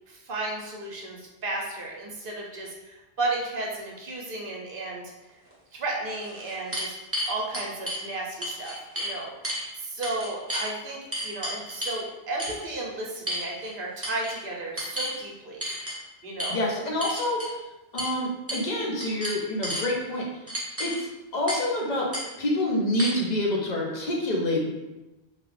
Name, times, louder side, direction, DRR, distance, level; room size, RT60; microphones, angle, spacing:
voice 1, 0.1-5.0 5.7-7.0 7.3-15.6 16.2-16.6, right 2 dB, 60° right, -2 dB, 0.9 m, -34 dB
sound 1, 5.5-5.6 6.1-8.0 8.4-9.1 9.4-9.7 10.0-10.7 11.1-12.0 12.4-12.6 13.3-13.7 14.0-14.4 14.8-15.2 15.6-16.0 16.4-16.5 17.0-17.5 18.0-18.1 18.5-18.7 19.0-19.9 20.5-21.0 21.5-21.7 22.1-22.2 23.0-23.1, equal, 15° right, 0.7 m, -32 dB
voice 2, 16.5-17.4 17.9-20.2 20.8-22.1 22.4-24.7, left 1 dB, 45° left, -2 dB, 0.8 m, -27 dB
3.7 x 2.3 x 3.2 m, 1.0 s
omnidirectional pair, 1.1 m